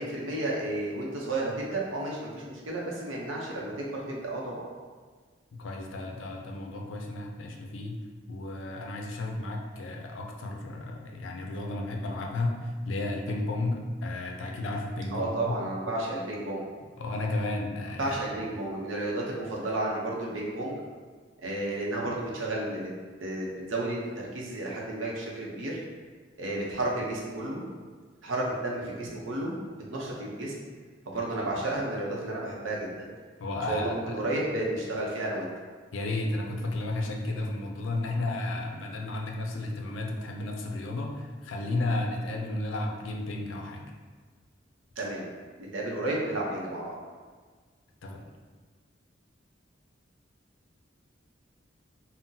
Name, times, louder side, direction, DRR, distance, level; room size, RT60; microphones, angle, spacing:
voice 1, 0.0-4.7 15.1-16.7 18.0-20.8 21.4-22.9 23.2-25.8 26.4-27.6 28.2-29.6 29.9-30.5 31.1-33.1 33.7-35.5 45.0-45.3 45.6-46.9, right 1 dB, 80° right, -3 dB, 0.7 m, -32 dB
voice 2, 5.5-8.0 8.3-15.5 17.0-18.2 33.4-34.2 35.9-43.9 48.0-48.2, left 2 dB, 85° left, 1 dB, 0.4 m, -33 dB
3.7 x 2.1 x 2.7 m, 1.5 s
head